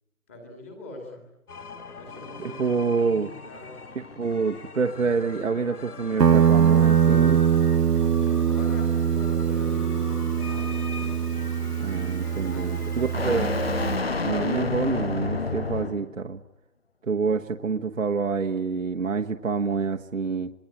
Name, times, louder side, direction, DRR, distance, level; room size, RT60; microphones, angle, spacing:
voice 1, 0.3-1.2 2.0-3.8 8.1-11.0 12.5-13.5, left 1 dB, 10° left, 1 dB, 2.4 m, -43 dB
sound 1, 1.5-14.1, left 4 dB, 70° left, 2.1 m, -42 dB
sound 2, 1.6-16.1, left 3 dB, 40° left, 1.0 m, -34 dB
voice 2, 2.4-3.3 3.9-7.4 11.8-13.5 14.2-16.4 17.0-20.5, right 5 dB, 55° right, 4 dB, 1.3 m, -27 dB
Guitar, 6.2-14.0, right 8 dB, 80° right, 1.0 m, -22 dB
26.5 x 22.0 x 10.0 m, 0.84 s
hypercardioid pair, 175°, 47 cm